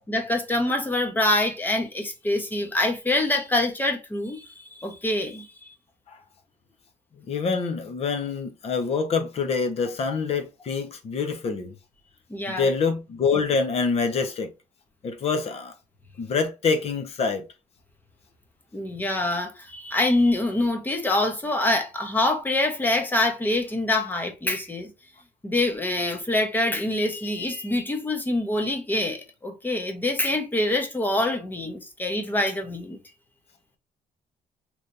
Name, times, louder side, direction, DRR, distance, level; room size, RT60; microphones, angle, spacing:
voice 1, 0.1-5.5 12.3-12.7 18.7-24.9 25.4-33.0, left 2 dB, 10° left, 0.8 m, -25 dB
voice 2, 7.2-11.7 12.5-14.5 15.0-15.7 16.2-17.4, left 5 dB, 45° left, 0.8 m, -26 dB
3.3 x 3.0 x 2.5 m
cardioid pair, 140°, 15 cm